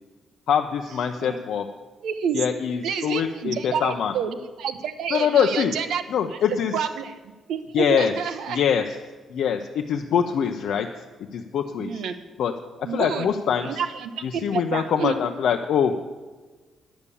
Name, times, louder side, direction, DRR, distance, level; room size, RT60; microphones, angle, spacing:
voice 1, 0.5-1.7 2.3-4.1 5.1-5.7 6.1-6.7 7.7-8.1 8.5-9.0 9.3-10.9 11.3-12.0 12.4-12.5 12.8-13.8 14.2-16.0, left 8 dB, 70° left, 4 dB, 0.6 m, -24 dB
voice 2, 2.0-2.4 2.8-6.0 6.7-7.1 7.5-8.6 11.8-12.1 12.8-13.3 13.6-15.2, right 7 dB, 90° right, 8 dB, 0.9 m, -29 dB
10.5 x 7.1 x 8.4 m, 1.3 s
cardioid pair, 150°, 0 cm